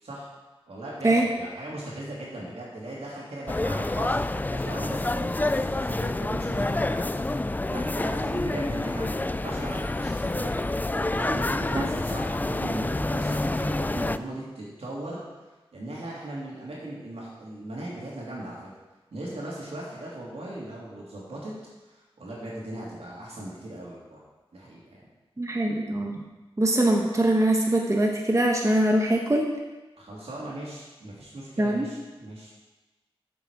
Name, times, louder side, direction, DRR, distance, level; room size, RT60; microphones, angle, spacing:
voice 1, 0.7-7.4 7.7-10.7 11.2-15.2 15.7-18.6 19.1-21.5 21.9-24.2 24.5-24.8 30.0-32.5, right 1 dB, 90° right, -5 dB, 2.9 m, -38 dB
sound 1, 3.5-14.2, left 2 dB, 15° left, 0.3 m, -28 dB
voice 2, 25.4-26.3 26.6-29.5 31.6-31.9, right 1 dB, 30° right, 0 dB, 1.2 m, -23 dB
8.4 x 7.3 x 4.9 m, 1.2 s
wide cardioid pair, 55°, 10 cm